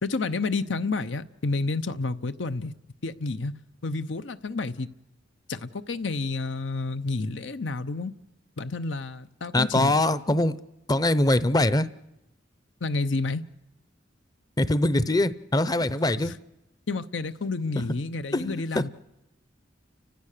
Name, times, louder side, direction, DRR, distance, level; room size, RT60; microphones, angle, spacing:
voice 1, 0.0-2.7 3.0-3.6 3.8-4.9 5.5-8.1 8.6-10.0 12.8-13.4 16.2-16.3 16.9-18.9, left 3 dB, 85° left, 0.8 m, -30 dB
voice 2, 9.5-10.6 10.9-11.9 14.6-16.3 18.3-18.8, left 1 dB, 20° left, 0.7 m, -23 dB
30.0 x 15.5 x 6.7 m
head